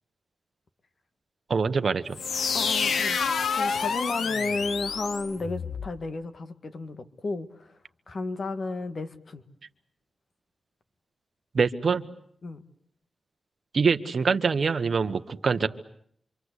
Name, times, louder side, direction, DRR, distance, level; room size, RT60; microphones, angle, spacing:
voice 1, 1.5-2.2 11.5-12.1 13.7-15.7, right 5 dB, 50° right, 9 dB, 1.3 m, -24 dB
sound 1, 2.1-5.9, left 5 dB, 85° left, 1.2 m, -28 dB
voice 2, 2.5-3.2 3.5-7.8 8.1-9.4 12.4-12.6, left 3 dB, 50° left, 9 dB, 1.9 m, -33 dB
27.0 x 25.5 x 8.3 m, 0.67 s
wide cardioid pair, 160°, 0 cm